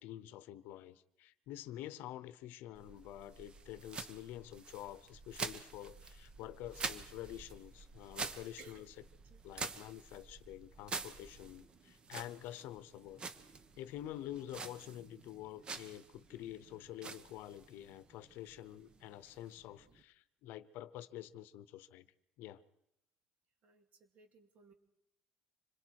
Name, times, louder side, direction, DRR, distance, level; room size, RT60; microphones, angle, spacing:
voice 1, 0.0-8.9 9.4-13.3 13.8-22.1 22.4-22.6, left 13 dB, 75° left, 16 dB, 0.8 m, -48 dB
sound 1, 2.7-20.0, right 4 dB, 25° right, 1.1 m, -48 dB
voice 2, 23.6-24.7, right 4 dB, 50° right, 6 dB, 2.4 m, -59 dB
26.0 x 21.5 x 4.7 m, 0.81 s
cardioid pair, 140°, 3 cm